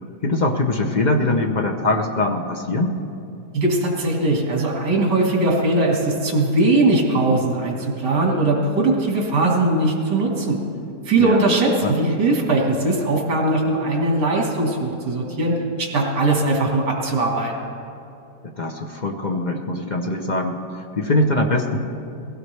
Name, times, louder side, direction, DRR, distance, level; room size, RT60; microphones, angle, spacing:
voice 1, 0.2-3.0 11.2-11.5 11.8-12.0 18.4-21.8, left 2 dB, 40° left, 2 dB, 0.6 m, -22 dB
voice 2, 3.5-10.6 11.1-17.5, right 2 dB, 80° right, -1 dB, 2.5 m, -20 dB
19.0 x 16.5 x 3.3 m, 2.7 s
omnidirectional pair, 1.8 m